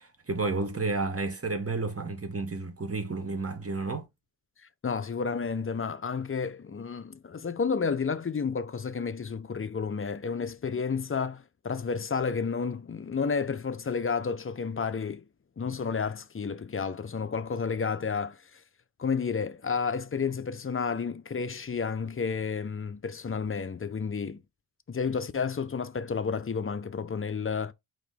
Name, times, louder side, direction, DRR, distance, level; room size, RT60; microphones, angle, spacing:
voice 1, 0.0-4.1, right 3 dB, 30° right, 1.1 m, -31 dB
voice 2, 4.8-15.2 15.6-18.6 19.0-24.4 24.9-27.7, left 5 dB, 30° left, 0.4 m, -31 dB
4.2 x 2.9 x 3.4 m
wide cardioid pair, 75°, 45 cm